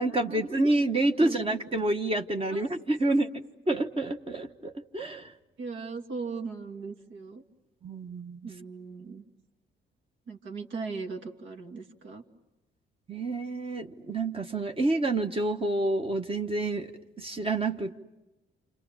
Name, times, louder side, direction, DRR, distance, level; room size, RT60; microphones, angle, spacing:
voice 1, 0.0-5.3 7.8-8.5 13.1-16.9 17.2-18.0, right 2 dB, 25° right, 4 dB, 1.3 m, -28 dB
voice 2, 1.2-1.5 2.5-2.6 3.1-3.2 5.6-7.4 8.4-9.2 10.3-12.2, right 4 dB, 70° right, 4 dB, 2.4 m, -38 dB
29.0 x 27.0 x 7.3 m, 1.0 s
cardioid pair, 90°, 20 cm